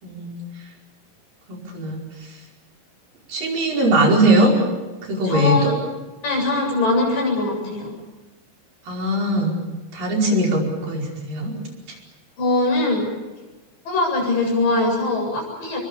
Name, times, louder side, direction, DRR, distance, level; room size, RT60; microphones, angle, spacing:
voice 1, 0.0-0.4 1.5-2.0 3.3-4.6 5.1-5.7 8.9-9.6 9.9-11.5, right 1 dB, 80° right, -1 dB, 6.9 m, -20 dB
voice 2, 5.2-5.7 6.2-7.9 12.4-13.1 13.9-15.8, left 2 dB, 75° left, 1 dB, 9.5 m, -21 dB
29.5 x 22.5 x 7.2 m, 1.2 s
omnidirectional pair, 4.0 m